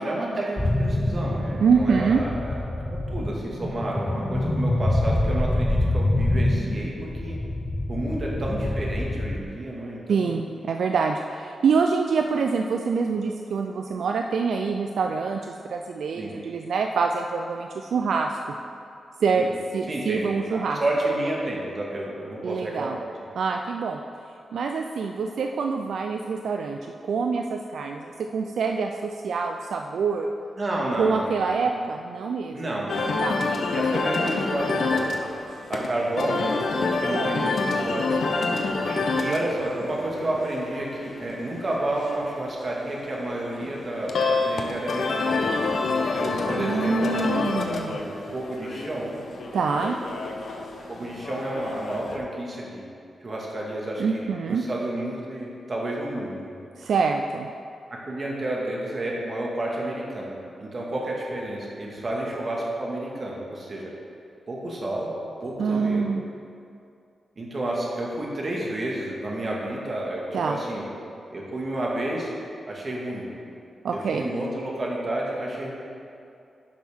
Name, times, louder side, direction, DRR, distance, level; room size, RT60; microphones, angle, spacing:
voice 1, 0.0-2.6 2.9-7.4 7.9-10.4 16.2-16.4 19.4-19.5 19.9-23.0 30.6-31.7 32.5-38.4 38.9-45.5 46.2-47.2 47.8-49.2 50.9-52.9 53.2-56.6 57.9-63.9 64.5-65.1 65.4-66.1 67.4-70.9 71.3-72.3 72.7-73.3 73.9-75.8, right 1 dB, 45° right, -3 dB, 1.8 m, -31 dB
sound 1, 0.6-9.4, left 1 dB, 15° left, 0.8 m, -26 dB
voice 2, 1.6-2.2 10.1-18.4 19.2-19.5 19.7-20.8 22.4-23.0 23.4-24.0 24.5-30.3 31.0-32.8 33.2-33.4 37.1-37.4 46.6-48.0 49.5-50.0 54.0-54.6 56.8-57.5 65.6-66.2 70.3-70.6 73.8-74.2, right 5 dB, 80° right, 3 dB, 0.3 m, -25 dB
sound 2, 32.9-52.2, left 3 dB, 70° left, 0.8 m, -28 dB
10.5 x 6.2 x 3.6 m, 2.5 s
cardioid pair, 85°, 0 cm